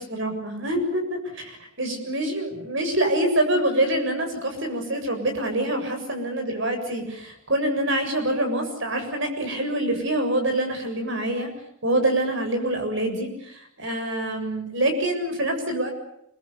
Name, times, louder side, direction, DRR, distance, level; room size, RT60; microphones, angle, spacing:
voice 1, 0.0-11.5 11.8-15.9, right 1 dB, 60° right, 6 dB, 7.4 m, -25 dB
28.5 x 22.5 x 6.9 m, 0.75 s
head